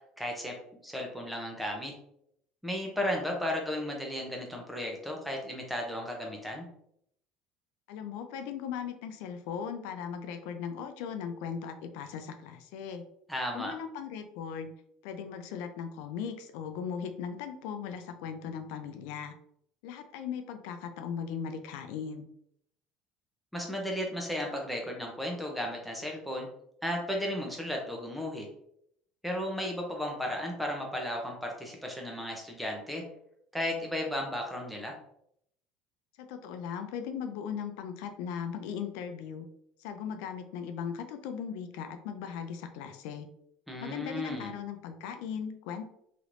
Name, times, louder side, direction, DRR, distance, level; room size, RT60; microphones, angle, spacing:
voice 1, 0.2-0.5 0.8-1.9 2.6-6.7 13.3-13.7 23.5-26.5 26.8-28.5 29.2-33.0 33.5-34.9 43.7-44.5, left 1 dB, ahead, 0 dB, 0.6 m, -34 dB
voice 2, 7.9-13.0 13.5-14.7 15.0-19.3 19.8-22.3 36.2-39.5 39.8-43.3 43.8-45.8, left 7 dB, 85° left, 7 dB, 0.4 m, -38 dB
3.2 x 3.0 x 2.5 m, 0.72 s
cardioid pair, 150°, 2 cm